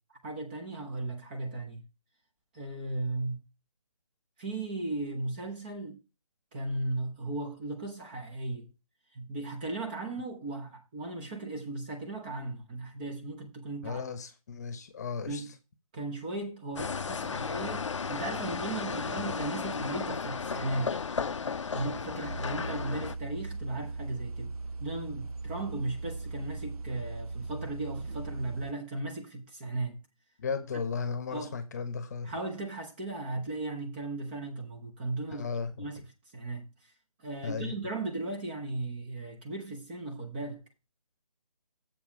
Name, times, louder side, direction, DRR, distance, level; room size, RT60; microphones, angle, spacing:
voice 1, 0.2-1.8 2.5-3.4 4.4-6.0 6.5-8.7 9.1-14.0 15.3-15.5 15.9-21.0 21.7-24.5 24.8-30.0 31.3-31.6 32.2-35.5 35.8-36.1 36.3-36.7 37.2-40.6, right 2 dB, 15° right, 0.8 m, -36 dB
voice 2, 13.8-15.4 30.4-32.3 35.3-35.7 37.4-37.8, left 5 dB, 30° left, 1.1 m, -35 dB
sound 1, 16.8-23.2, left 5 dB, 55° left, 0.6 m, -34 dB
sound 2, 22.2-28.7, right 3 dB, 80° right, 0.7 m, -39 dB
7.5 x 5.4 x 5.1 m
figure-of-eight pair, 160°, 19 cm